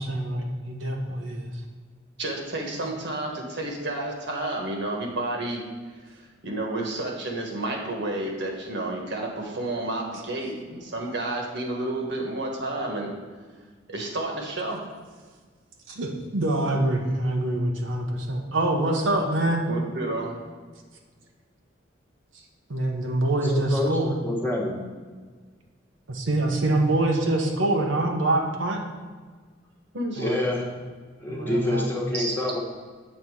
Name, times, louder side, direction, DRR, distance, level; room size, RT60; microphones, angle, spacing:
voice 1, 0.0-1.5 2.7-2.8 15.9-19.6 22.7-24.1 26.1-28.8 30.2-30.5 31.3-32.0, right 1 dB, 90° right, 1 dB, 1.0 m, -25 dB
voice 2, 2.2-5.6 6.2-13.1 13.9-14.8 19.7-20.4 29.9-30.2 32.1-32.3, right 2 dB, 65° right, 0 dB, 1.5 m, -30 dB
voice 3, 23.4-24.0 24.2-24.7 30.2-30.6 31.2-32.6, left 1 dB, 10° left, -3 dB, 1.3 m, -27 dB
7.8 x 4.1 x 6.4 m, 1.5 s
head